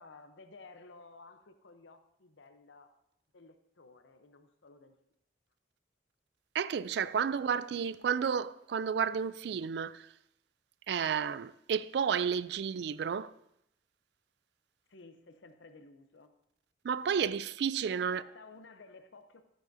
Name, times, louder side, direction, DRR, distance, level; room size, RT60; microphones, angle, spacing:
voice 1, 0.0-2.9 3.3-4.9 7.7-7.9 14.9-16.3 17.8-19.4, left 3 dB, 80° left, 0.7 m, -54 dB
voice 2, 6.5-10.1 10.9-13.3 16.8-18.2, right 7 dB, 65° right, 0.3 m, -31 dB
13.5 x 9.0 x 2.7 m
head